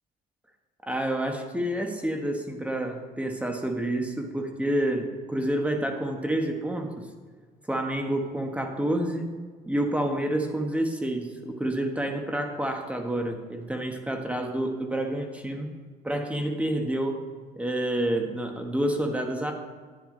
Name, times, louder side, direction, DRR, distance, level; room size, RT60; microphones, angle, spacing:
voice 1, 0.9-7.1 7.7-9.3 9.7-15.7 16.0-17.2 17.6-19.5, right 1 dB, 10° right, 3 dB, 1.4 m, -28 dB
11.0 x 9.5 x 3.9 m, 1.6 s
cardioid pair, 110°, 17 cm